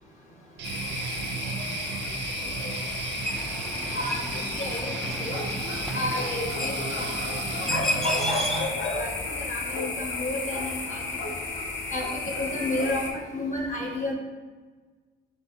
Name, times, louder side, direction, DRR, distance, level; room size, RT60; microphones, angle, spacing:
sound 1, 0.6-13.1, left 3 dB, 75° left, 0.8 m, -32 dB
Guitar, 0.6-8.6, right 6 dB, 60° right, 0.4 m, -35 dB
sound 2, 3.2-9.0, left 1 dB, ahead, 0.3 m, -34 dB
voice 1, 3.9-5.4 5.6-8.7 8.9-11.0 11.9-14.1, left 2 dB, 40° left, -1 dB, 0.8 m, -33 dB
3.0 x 3.0 x 4.4 m, 1.4 s
cardioid pair, 90°, 20 cm